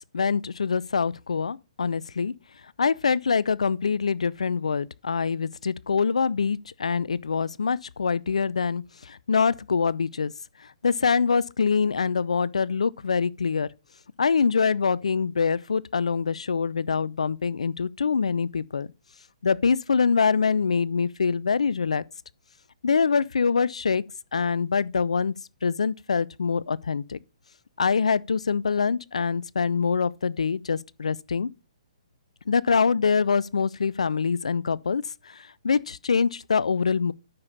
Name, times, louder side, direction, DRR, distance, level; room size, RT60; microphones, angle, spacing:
voice 1, 0.1-2.3 2.8-10.3 10.8-13.7 14.2-18.9 19.4-22.0 22.8-24.0 24.3-25.3 25.6-27.2 27.8-31.5 32.5-37.1, left 5 dB, 70° left, 0.5 m, -24 dB
9.6 x 6.8 x 4.0 m
figure-of-eight pair, 125°, 4 cm